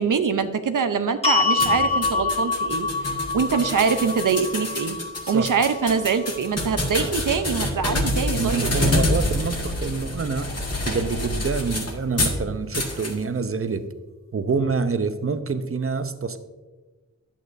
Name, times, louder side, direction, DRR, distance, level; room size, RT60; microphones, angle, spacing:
voice 1, 0.0-5.0 5.3-8.7, right 6 dB, 85° right, 9 dB, 0.7 m, -24 dB
sound 1, 1.2-7.4, left 4 dB, 20° left, 1.9 m, -27 dB
sound 2, 1.6-12.4 12.7-13.1, left 1 dB, 50° left, 1.6 m, -27 dB
voice 2, 8.4-10.6 10.9-13.9 14.3-16.4, right 4 dB, 45° right, 10 dB, 0.7 m, -26 dB
11.0 x 8.4 x 2.6 m, 1.3 s
wide cardioid pair, 80°, 31 cm